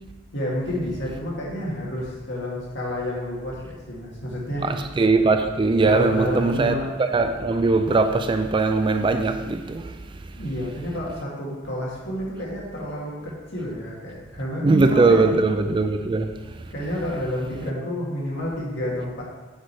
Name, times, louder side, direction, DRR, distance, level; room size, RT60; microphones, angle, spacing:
voice 1, 0.3-4.7 5.8-6.9 10.3-15.4 16.7-19.3, equal, 65° left, 2.1 m, -29 dB
voice 2, 4.6-9.9 14.6-16.3, right 3 dB, 25° right, 0.3 m, -20 dB
6.6 x 4.9 x 4.6 m
head